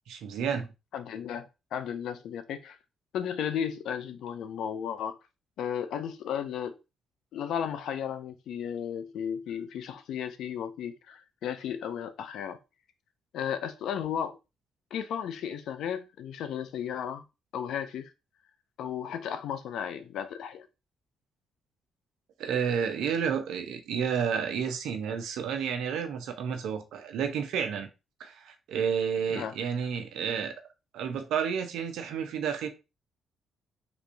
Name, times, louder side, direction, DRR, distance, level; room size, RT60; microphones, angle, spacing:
voice 1, 0.1-0.7 22.4-27.9 28.2-30.5 30.9-32.7, right 7 dB, 85° right, 0.6 m, -31 dB
voice 2, 0.9-2.8 3.1-5.2 5.6-6.7 7.3-12.6 13.3-14.4 14.9-17.2 17.5-18.1 18.8-20.7 29.3-29.5, left 8 dB, 75° left, 0.5 m, -34 dB
3.4 x 3.0 x 2.6 m
cardioid pair, 90°, 0 cm